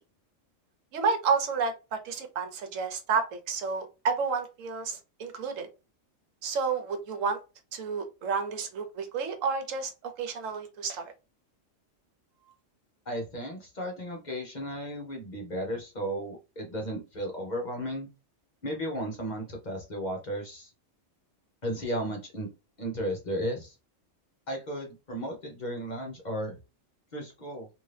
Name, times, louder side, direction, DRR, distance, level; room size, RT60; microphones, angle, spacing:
voice 1, 0.9-5.7 6.4-7.4 7.7-11.1, right 5 dB, 85° right, 1.1 m, -30 dB
voice 2, 13.1-18.1 18.6-20.7 21.6-22.5 22.8-23.7 24.5-26.6 27.1-27.7, equal, 40° left, 0.7 m, -34 dB
2.6 x 2.6 x 3.2 m
omnidirectional pair, 1.3 m